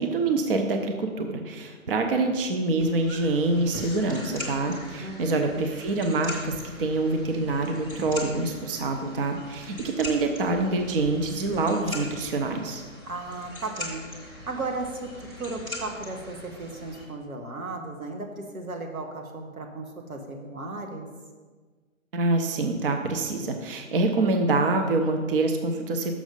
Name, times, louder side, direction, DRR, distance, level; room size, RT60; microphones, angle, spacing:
voice 1, 0.0-12.8 22.1-26.1, right 2 dB, 40° right, 4 dB, 0.7 m, -26 dB
sound 1, 2.8-17.0, left 1 dB, 10° right, 1.0 m, -41 dB
voice 2, 5.0-5.7 13.0-21.1, right 2 dB, 90° right, 2 dB, 1.5 m, -35 dB
6.3 x 6.2 x 5.3 m, 1.4 s
hypercardioid pair, 150°, 42 cm